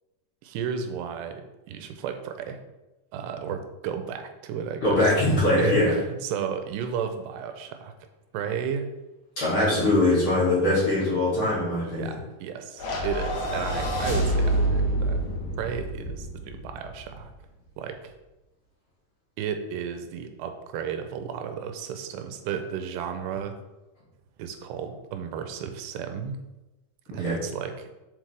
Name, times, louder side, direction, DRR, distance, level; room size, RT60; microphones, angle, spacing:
voice 1, 0.4-2.6 3.1-5.0 5.6-7.9 8.3-9.0 9.7-10.0 11.8-15.2 15.6-17.3 17.8-18.1 19.4-23.6 24.4-26.4 27.1-27.9, right 7 dB, 90° right, 7 dB, 2.8 m, -33 dB
voice 2, 4.8-5.9 9.4-12.1 27.2-27.4, left 1 dB, 35° left, -8 dB, 2.9 m, -22 dB
sound 1, 12.8-17.2, right 1 dB, 75° left, 1.4 m, -27 dB
7.4 x 7.1 x 3.4 m, 1.0 s
omnidirectional pair, 4.8 m